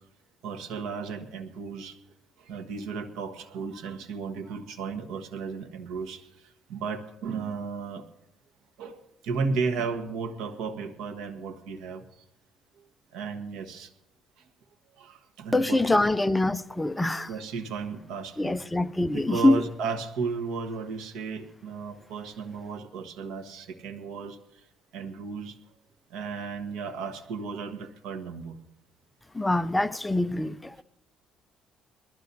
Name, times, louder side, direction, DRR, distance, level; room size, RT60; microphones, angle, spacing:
voice 1, 0.4-2.0 2.5-6.2 6.7-8.1 8.8-12.0 13.1-13.9 15.0-16.1 17.3-18.6 19.1-24.4 24.9-25.5 26.1-28.6, right 5 dB, 85° right, 1.4 m, -34 dB
voice 2, 15.5-17.3 18.4-19.6 29.3-30.8, left 2 dB, 10° left, 0.4 m, -24 dB
22.0 x 13.5 x 2.8 m
cardioid pair, 130°, 0 cm